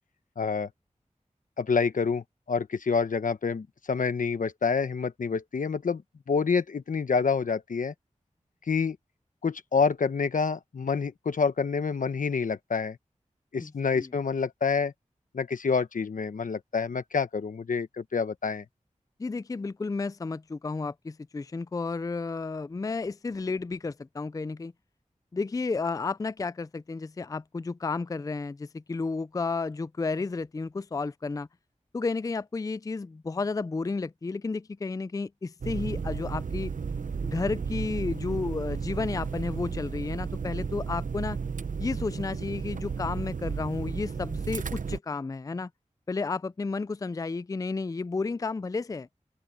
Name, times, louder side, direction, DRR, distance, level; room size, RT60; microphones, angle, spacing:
voice 1, 0.4-0.7 1.6-6.0 6.3-7.9 8.7-9.0 9.4-13.0 13.5-14.9 15.3-18.6, left 5 dB, 85° left, 1.1 m, -27 dB
voice 2, 13.6-14.1 19.2-24.7 25.3-31.5 31.9-36.7 37.2-41.4 41.8-45.7 46.1-49.1, left 4 dB, 25° left, 0.3 m, -32 dB
sound 1, 35.6-45.0, right 5 dB, 80° right, 0.8 m, -33 dB
open air
wide cardioid pair, 50°, 13 cm